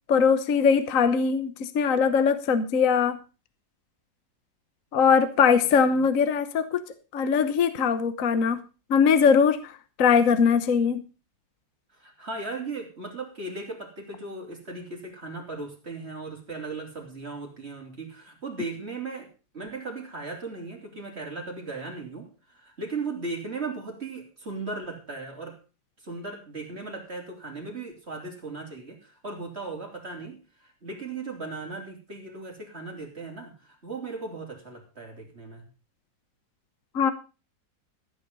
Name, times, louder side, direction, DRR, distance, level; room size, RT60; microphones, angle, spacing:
voice 1, 0.1-3.2 4.9-6.8 7.1-8.6 8.9-9.7 10.0-11.0 36.9-37.1, left 6 dB, 50° left, 11 dB, 1.4 m, -21 dB
voice 2, 11.9-19.3 19.5-25.6 26.0-35.7, right 3 dB, 35° right, 1 dB, 3.6 m, -37 dB
14.5 x 8.9 x 5.4 m, 0.32 s
omnidirectional pair, 2.0 m